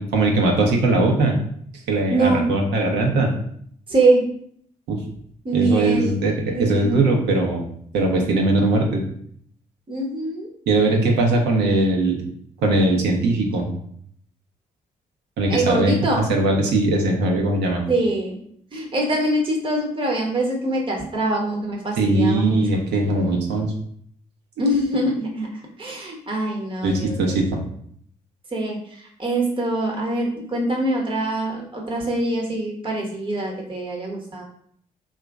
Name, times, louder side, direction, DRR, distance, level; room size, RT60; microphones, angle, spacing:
voice 1, 0.0-1.4 1.9-3.3 4.9-5.0 5.5-7.6 7.9-9.0 10.7-12.2 12.6-13.7 15.4-15.9 16.3-17.8 22.0-23.7 26.8-27.6, right 2 dB, 65° right, 1 dB, 0.8 m, -20 dB
voice 2, 2.1-2.5 3.9-4.2 5.4-6.2 6.5-7.1 9.9-10.5 15.5-16.3 17.9-18.4 18.7-22.8 24.6-25.5 25.8-27.3 28.5-34.4, right 2 dB, 25° right, 0 dB, 0.9 m, -23 dB
2.9 x 2.5 x 3.5 m, 0.65 s
figure-of-eight pair, 40°, 19 cm